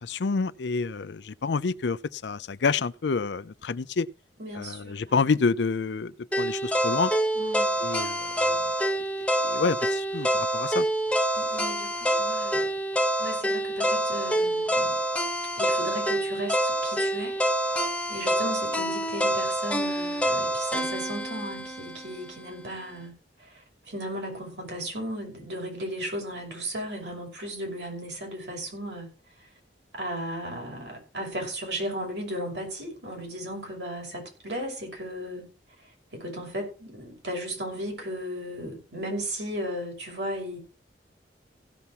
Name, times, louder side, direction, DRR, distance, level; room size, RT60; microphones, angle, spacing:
voice 1, 0.0-4.1 4.5-7.1 7.8-8.4 9.4-10.9, left 4 dB, 80° left, 0.5 m, -28 dB
voice 2, 4.4-5.2 7.4-7.8 11.3-12.7 13.2-15.0 15.5-17.4 18.1-23.1 23.4-29.1 29.9-35.4 36.1-40.6, equal, 80° right, 5.9 m, -35 dB
sound 1, 6.3-22.4, right 1 dB, 5° left, 1.1 m, -27 dB
16.5 x 7.0 x 4.5 m
head